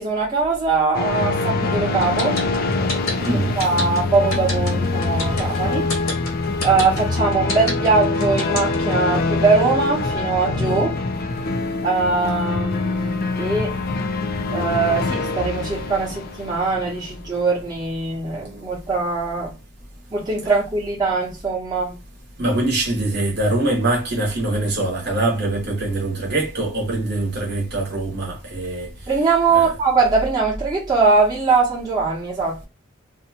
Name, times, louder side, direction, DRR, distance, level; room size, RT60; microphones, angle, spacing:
voice 1, 0.0-2.4 3.6-5.8 6.6-11.0 11.8-13.7 14.5-19.5 20.1-22.0 29.1-32.7, right 4 dB, 20° right, 0.9 m, -21 dB
sound 1, 0.9-17.8, left 3 dB, 45° left, 0.3 m, -24 dB
sound 2, 2.0-8.9, left 2 dB, 85° left, 1.3 m, -27 dB
voice 2, 3.2-3.6 5.4-5.6 22.4-28.9 29.5-29.7, right 2 dB, 50° right, 1.0 m, -23 dB
2.7 x 2.3 x 2.8 m
head